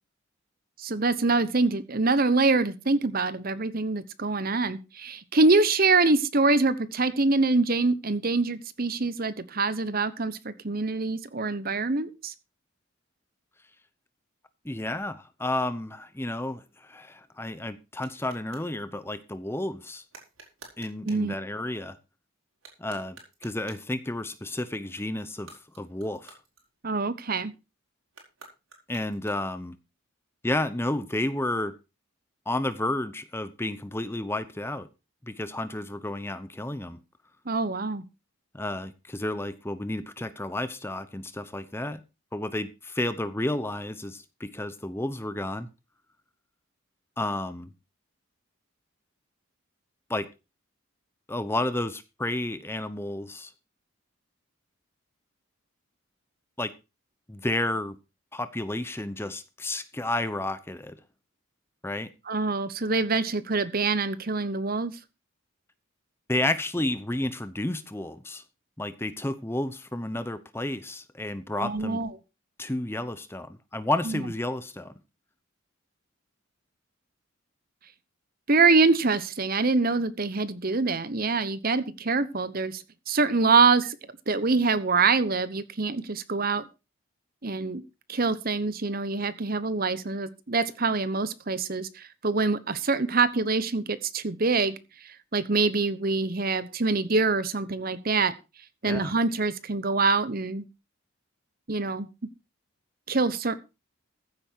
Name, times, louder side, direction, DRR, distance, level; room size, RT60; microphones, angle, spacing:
voice 1, 0.8-12.3 21.0-21.3 26.8-27.5 37.5-38.0 62.3-65.0 71.6-72.1 74.0-74.2 78.5-84.0 84.3-86.6 87.4-87.8 88.1-98.3 98.8-100.6 101.7-102.1 103.1-103.6, right 3 dB, 45° right, 1.0 m, -25 dB
voice 2, 14.6-20.0 20.8-22.0 22.8-26.4 28.9-29.8 30.4-31.7 32.5-34.9 35.2-37.0 38.5-42.0 42.3-45.7 47.2-47.7 50.1-50.3 51.3-53.5 56.6-56.7 57.3-58.0 58.3-60.9 61.8-62.1 66.3-68.4 68.8-72.0 72.6-74.9 98.8-99.1, left 1 dB, 10° left, 0.8 m, -31 dB
sound 1, 17.2-18.7 20.1-21.3 22.5-24.0 25.3-27.1 28.1-29.7, right 4 dB, 70° right, 5.1 m, -52 dB
15.0 x 8.8 x 4.6 m
head